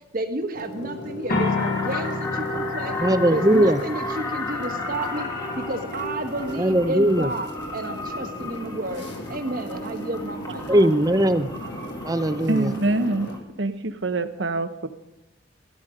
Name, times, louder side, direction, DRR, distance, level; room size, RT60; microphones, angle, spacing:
voice 1, 0.1-3.0 3.3-11.2, right 1 dB, 50° right, 7 dB, 1.3 m, -31 dB
sound 1, 0.5-13.4, equal, 70° left, 1.6 m, -36 dB
sound 2, 1.3-13.1, left 3 dB, 50° left, 2.5 m, -35 dB
sound 3, 1.6-13.4, left 2 dB, 20° left, 1.7 m, -35 dB
voice 2, 3.0-3.8 6.6-7.3 10.7-11.5 12.0-12.7, right 1 dB, 20° right, 11 dB, 0.7 m, -19 dB
voice 3, 12.5-13.3 13.6-14.9, right 2 dB, 75° right, 10 dB, 1.0 m, -25 dB
13.0 x 12.5 x 5.1 m, 0.94 s
head